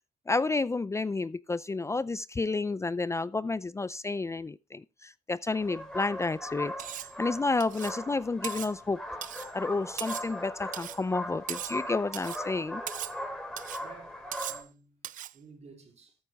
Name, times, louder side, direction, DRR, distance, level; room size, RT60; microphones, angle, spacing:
voice 1, 0.3-9.0 9.5-12.8, left 3 dB, 20° left, 0.5 m, -31 dB
sound 1, 5.5-14.6, left 1 dB, 5° left, 4.2 m, -39 dB
Cutlery silverware, 6.8-7.2 7.6-8.0 8.4-8.7 9.2-9.5 10.0-10.3 10.7-11.0 11.5-11.8 12.1-12.5 12.9-13.2 13.6-13.8 14.3-14.7 15.0-15.4, right 13 dB, 70° right, 0.5 m, -39 dB
voice 2, 13.8-15.0 15.3-16.2, right 4 dB, 55° right, 4.1 m, -53 dB
13.5 x 8.3 x 3.5 m
cardioid pair, 80°, 14 cm